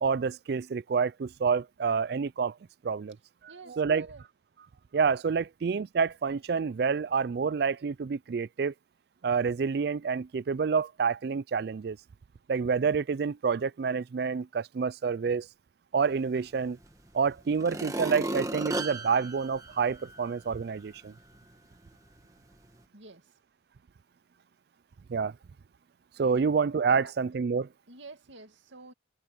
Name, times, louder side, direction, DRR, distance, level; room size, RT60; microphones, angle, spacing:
voice 1, 0.0-2.5 2.8-3.2 3.4-4.1 4.9-8.7 9.2-12.0 12.5-15.5 15.9-16.8 17.1-21.1 25.1-25.3 26.2-27.7, right 5 dB, 55° right, 0.3 m, -28 dB
voice 2, 3.5-4.2 22.9-23.2 26.3-26.5 26.9-27.1 27.9-28.9, right 3 dB, 75° right, 2.4 m, -48 dB
sound 1, 16.8-16.9 17.5-20.4 20.9-21.0, right 1 dB, 15° right, 1.5 m, -35 dB
head